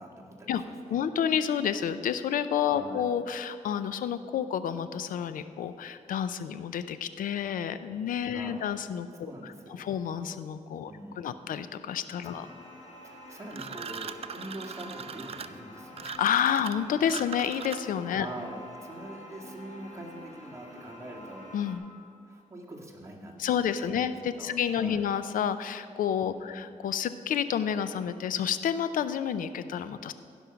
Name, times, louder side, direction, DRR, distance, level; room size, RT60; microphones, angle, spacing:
voice 1, 0.0-1.0 2.7-3.1 8.3-8.7 9.2-9.9 10.8-11.4 12.2-12.5 13.0-16.1 18.1-21.5 22.3-25.1 26.3-26.6, right 1 dB, 20° right, -2 dB, 2.0 m, -44 dB
voice 2, 0.9-9.5 9.8-10.9 11.2-12.5 16.1-18.3 21.5-21.8 23.4-30.1, left 8 dB, 85° left, 12 dB, 0.5 m, -30 dB
sound 1, 12.1-21.8, left 1 dB, 60° left, 1.7 m, -47 dB
sound 2, 13.5-18.1, right 6 dB, 45° right, 0.5 m, -40 dB
15.5 x 5.4 x 5.9 m, 2.5 s
cardioid pair, 80°, 14 cm